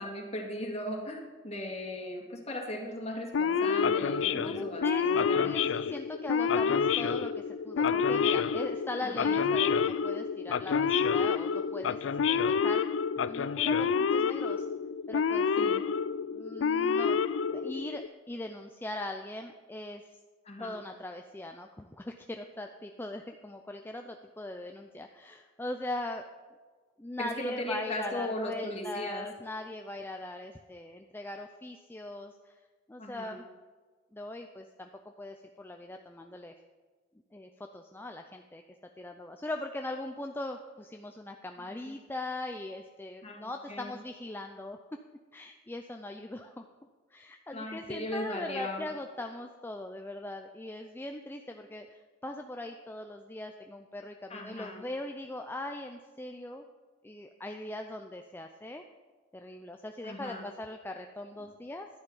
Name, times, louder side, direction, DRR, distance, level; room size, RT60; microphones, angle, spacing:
voice 1, 0.0-5.5 9.0-9.4 15.6-15.8 20.5-20.8 27.2-29.3 33.0-33.4 43.2-43.9 47.5-48.9 54.3-54.8 60.0-60.4, left 1 dB, 35° left, 1 dB, 2.1 m, -38 dB
Male speech man speaking / Siren, 3.3-18.1, left 6 dB, 85° left, 0.4 m, -28 dB
voice 2, 4.3-12.8 13.2-14.6 15.1-15.5 16.3-20.1 20.6-26.2 27.0-32.5 32.9-33.5 34.1-34.9 35.2-36.6 37.3-38.6 39.0-44.8 45.3-46.6 47.1-56.6 57.0-58.8 59.3-61.9, left 1 dB, 10° left, 4 dB, 0.5 m, -40 dB
11.5 x 10.0 x 5.5 m, 1.4 s
head